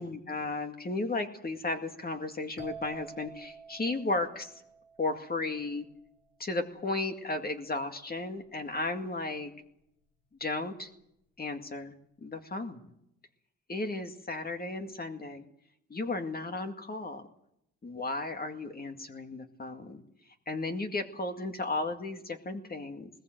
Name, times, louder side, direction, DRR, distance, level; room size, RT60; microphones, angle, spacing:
voice 1, 0.0-4.5 5.0-5.9 6.4-9.5 10.4-10.9 11.4-12.0 12.2-12.8 13.7-15.4 15.9-17.3 17.8-20.0 20.5-23.1, left 2 dB, 30° left, 5 dB, 2.1 m, -34 dB
sound 1, 2.6-6.2, right 4 dB, 50° left, 4.3 m, -49 dB
20.5 x 19.0 x 7.9 m, 0.79 s
cardioid pair, 90°, 30 cm